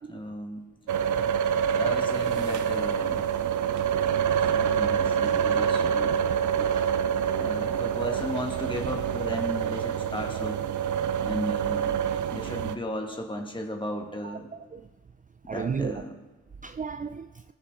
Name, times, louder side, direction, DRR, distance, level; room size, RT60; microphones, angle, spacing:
voice 1, 0.1-0.6 1.7-3.3 4.0-6.2 7.4-10.6 11.2-12.0 12.3-14.5 15.5-16.1, equal, 15° left, 2.2 m, -35 dB
Japan Matsudo Hotel Room Noisy Air Vent, 0.9-12.8, right 8 dB, 65° right, 0.7 m, -26 dB
voice 2, 6.5-7.0 14.2-14.4 14.7-14.8 15.5-16.0 16.6-17.3, right 5 dB, 25° right, 0.5 m, -34 dB
19.5 x 7.3 x 3.8 m
hypercardioid pair, 40°, 32 cm